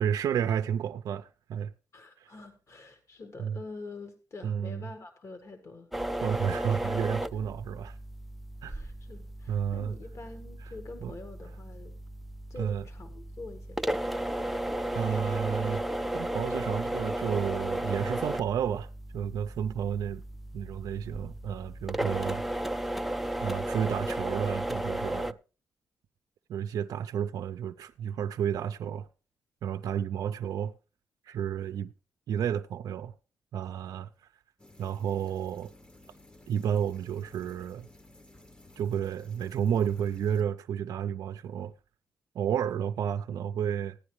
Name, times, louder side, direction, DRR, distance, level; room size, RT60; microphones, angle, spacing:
voice 1, 0.0-1.7 2.2-2.3 3.4-3.6 4.4-4.9 6.2-7.9 8.6-8.7 9.5-9.9 10.6-10.7 11.0-11.1 12.6-12.8 14.9-15.8 16.1-20.2 20.5-22.4 23.4-25.4 26.5-29.1 29.6-30.7 31.2-31.9 32.3-33.1 33.5-34.3 34.8-35.7 36.5-37.9 38.8-41.7 42.3-44.0, right 8 dB, 75° right, 0.4 m, -31 dB
voice 2, 1.9-5.9 7.3-7.8 8.6-12.0 12.5-13.9, left 3 dB, 50° left, 1.7 m, -46 dB
sound 1, 5.9-25.3, right 1 dB, ahead, 0.5 m, -34 dB
sound 2, 34.6-40.4, left 2 dB, 15° left, 0.9 m, -55 dB
15.0 x 9.6 x 3.1 m
cardioid pair, 65°, 6 cm